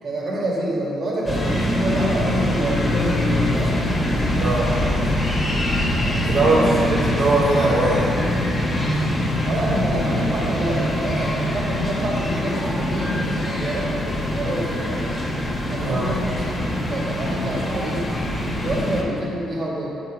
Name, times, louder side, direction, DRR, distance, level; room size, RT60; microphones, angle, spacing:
voice 1, 0.0-3.9 6.5-6.7 9.4-15.1 15.7-18.1 18.6-19.9, right 1 dB, 55° right, -4 dB, 1.8 m, -27 dB
sound 1, 1.2-19.0, left 1 dB, 30° left, 1.5 m, -23 dB
voice 2, 4.4-4.7 6.2-6.6 6.9-8.1 15.8-16.2, right 2 dB, 75° right, -7 dB, 1.1 m, -20 dB
7.0 x 5.3 x 5.0 m, 2.9 s
cardioid pair, 90°, 0 cm